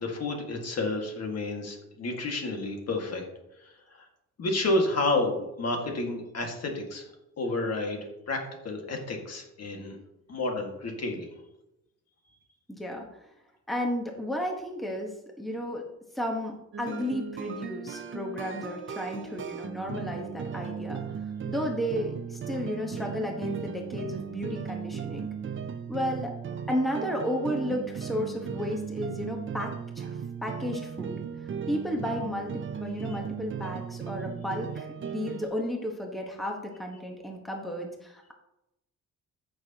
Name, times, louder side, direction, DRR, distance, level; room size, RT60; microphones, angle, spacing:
voice 1, 0.0-3.2 3.6-3.7 4.0-4.1 4.4-7.0 7.4-8.0 8.3-10.0 10.3-11.3 33.1-33.2, left 2 dB, 50° left, 2 dB, 1.9 m, -30 dB
voice 2, 12.7-13.3 13.7-15.1 15.4-15.8 16.1-21.1 21.5-25.3 25.9-26.3 26.7-31.1 31.7-38.3, equal, ahead, 1 dB, 1.2 m, -33 dB
sound 1, 16.7-35.4, right 7 dB, 40° right, 0.6 m, -37 dB
14.0 x 6.3 x 2.9 m, 0.90 s
cardioid pair, 135°, 31 cm